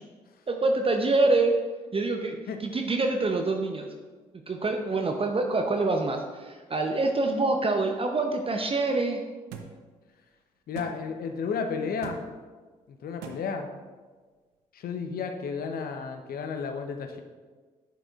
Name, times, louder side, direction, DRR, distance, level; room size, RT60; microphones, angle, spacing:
voice 1, 0.5-1.5 1.9-3.9 4.5-9.2, right 2 dB, 35° right, 4 dB, 0.6 m, -26 dB
sound 1, 9.5-9.7 10.7-10.9 12.0-12.2 13.2-13.4, right 7 dB, 80° right, 0.6 m, -39 dB
voice 2, 10.7-12.2 12.9-13.7 14.7-17.2, left 5 dB, 60° left, 6 dB, 0.7 m, -32 dB
8.3 x 6.1 x 2.4 m, 1.4 s
hypercardioid pair, 40°, 17 cm